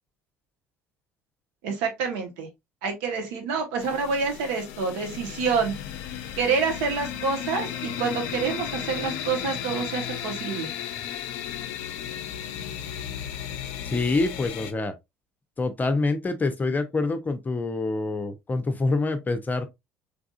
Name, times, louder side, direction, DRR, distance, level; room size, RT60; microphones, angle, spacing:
voice 1, 1.6-2.5 2.8-5.7 6.4-10.7, right 5 dB, 65° right, 1.1 m, -27 dB
sound 1, 3.8-14.7, left 9 dB, 65° left, 0.5 m, -34 dB
voice 2, 13.8-14.9 15.6-19.7, left 3 dB, 25° left, 0.7 m, -26 dB
3.6 x 3.4 x 2.4 m
figure-of-eight pair, 60°, 8 cm